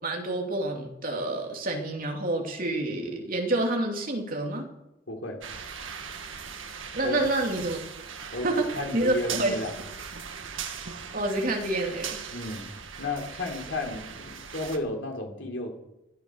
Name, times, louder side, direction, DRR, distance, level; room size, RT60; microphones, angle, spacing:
voice 1, 0.0-4.7 6.9-7.8 8.4-9.5 11.1-12.2, right 2 dB, 45° right, 2 dB, 2.9 m, -28 dB
voice 2, 5.1-5.4 7.0-7.2 8.3-8.5 8.7-9.7 12.3-12.7 13.0-15.8, left 2 dB, 70° left, 3 dB, 3.5 m, -33 dB
sound 1, 5.4-14.8, right 6 dB, 90° right, 1.7 m, -39 dB
18.5 x 11.5 x 6.5 m, 0.93 s
head